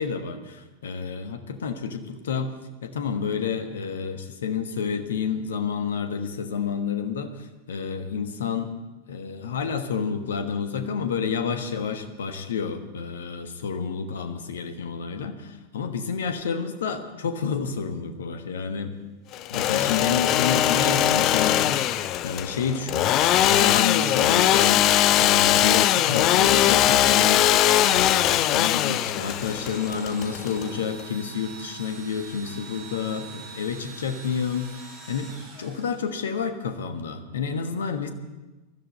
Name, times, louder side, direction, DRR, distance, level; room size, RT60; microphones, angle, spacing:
voice 1, 0.0-2.5 2.8-7.3 7.7-8.7 9.1-19.0 19.5-27.4 27.8-38.1, left 6 dB, 65° left, 8 dB, 1.2 m, -29 dB
Engine / Sawing, 19.3-31.0, left 13 dB, 35° left, 0.4 m, -21 dB
Engine / Drill, 29.1-36.4, right 4 dB, 45° right, 5.2 m, -44 dB
20.5 x 13.0 x 4.2 m, 1.1 s
figure-of-eight pair, 90°, 0 cm